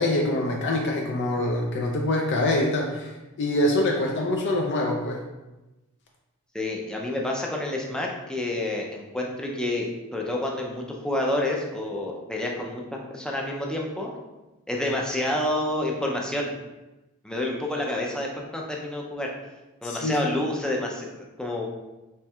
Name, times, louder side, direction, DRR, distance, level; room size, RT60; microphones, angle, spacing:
voice 1, 0.0-3.1 3.4-5.2 19.8-20.2, left 1 dB, 55° left, 0 dB, 0.5 m, -25 dB
voice 2, 6.5-12.8 13.1-14.1 14.7-16.5 17.2-19.3 19.8-21.7, left 1 dB, 5° left, -1 dB, 0.5 m, -29 dB
4.4 x 3.2 x 2.3 m, 1.0 s
head